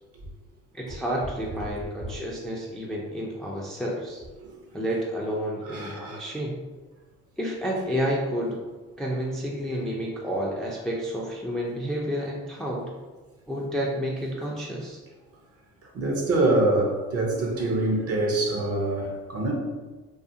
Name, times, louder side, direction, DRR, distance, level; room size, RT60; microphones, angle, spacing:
voice 1, 0.7-4.2 4.7-6.6 7.4-8.6 9.0-12.9 13.5-15.0, equal, ahead, -3 dB, 0.4 m, -30 dB
voice 2, 5.6-6.3 15.8-19.5, right 2 dB, 45° right, 0 dB, 0.7 m, -25 dB
2.4 x 2.4 x 2.6 m, 1.2 s
supercardioid pair, 80°, 32 cm